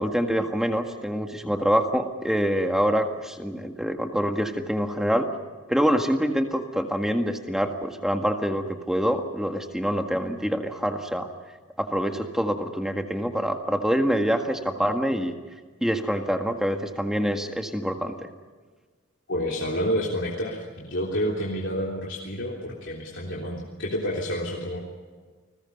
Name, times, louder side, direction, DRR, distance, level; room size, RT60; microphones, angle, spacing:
voice 1, 0.0-5.3 5.7-11.3 11.8-15.4 15.8-18.3, equal, ahead, 4 dB, 1.8 m, -25 dB
voice 2, 19.3-24.8, equal, 55° left, -3 dB, 3.5 m, -29 dB
30.0 x 20.5 x 5.5 m, 1.4 s
head